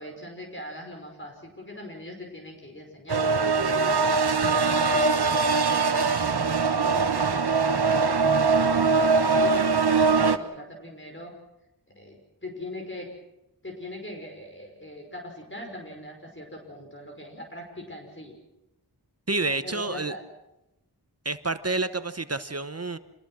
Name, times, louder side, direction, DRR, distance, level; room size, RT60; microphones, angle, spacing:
voice 1, 0.0-6.1 6.8-11.3 11.9-13.1 13.6-18.4 19.4-20.2, left 1 dB, 30° left, 1 dB, 5.5 m, -41 dB
sound 1, 3.1-10.4, right 4 dB, 75° right, 1.2 m, -22 dB
voice 2, 19.3-20.1 21.2-23.0, right 3 dB, 40° right, 11 dB, 1.0 m, -29 dB
27.0 x 21.5 x 6.3 m, 0.91 s
wide cardioid pair, 60°, 39 cm